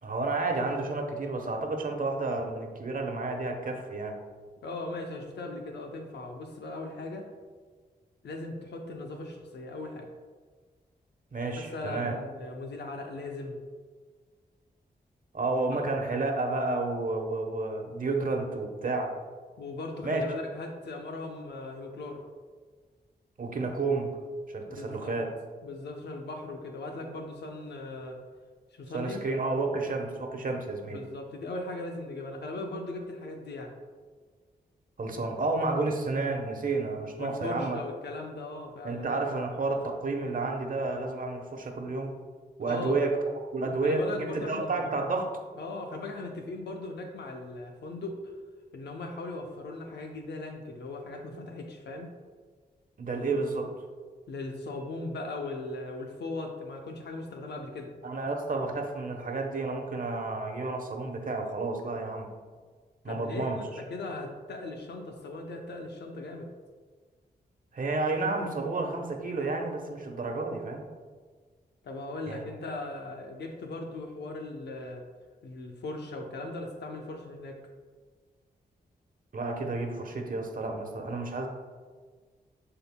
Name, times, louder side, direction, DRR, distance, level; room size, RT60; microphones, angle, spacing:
voice 1, 0.0-4.2 11.3-12.1 15.3-19.1 20.0-20.2 23.4-24.1 24.5-25.3 28.9-31.0 35.0-37.8 38.8-42.1 42.6-45.3 53.0-53.7 58.0-62.3 63.0-63.6 67.7-70.8 72.3-72.4 79.3-81.5, right 3 dB, 50° right, 3 dB, 1.1 m, -31 dB
voice 2, 4.6-7.3 8.2-10.1 11.5-13.6 15.7-15.8 19.6-22.2 24.7-25.2 25.6-28.2 28.7-29.2 30.8-33.7 37.2-39.0 42.6-43.0 43.6-44.9 45.6-48.3 48.7-52.1 54.3-57.9 63.0-66.5 71.8-75.0 75.4-77.6, left 2 dB, 80° left, 3 dB, 0.8 m, -38 dB
11.0 x 3.8 x 2.2 m, 1.5 s
cardioid pair, 55°, 17 cm